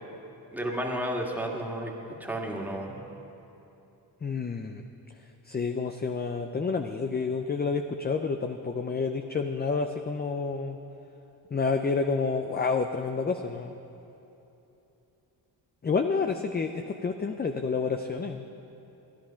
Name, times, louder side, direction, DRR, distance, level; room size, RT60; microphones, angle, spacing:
voice 1, 0.5-1.9 2.2-3.0, right 1 dB, 5° right, -1 dB, 1.9 m, -32 dB
voice 2, 4.2-4.8 5.5-10.8 11.5-13.7 15.8-18.4, left 4 dB, 25° left, 6 dB, 0.5 m, -29 dB
13.0 x 10.5 x 5.7 m, 3.0 s
cardioid pair, 70°, 42 cm